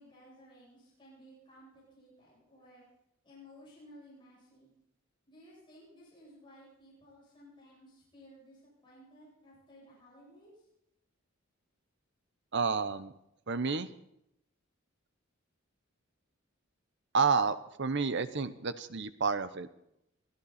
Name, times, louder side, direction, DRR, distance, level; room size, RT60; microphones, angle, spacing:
voice 1, 0.0-2.8 3.2-4.7 5.3-10.5, equal, 25° left, -6 dB, 7.8 m, -56 dB
voice 2, 12.5-13.1 13.5-13.9 17.1-19.7, right 5 dB, 60° right, 13 dB, 0.9 m, -30 dB
21.5 x 13.5 x 4.2 m, 0.82 s
head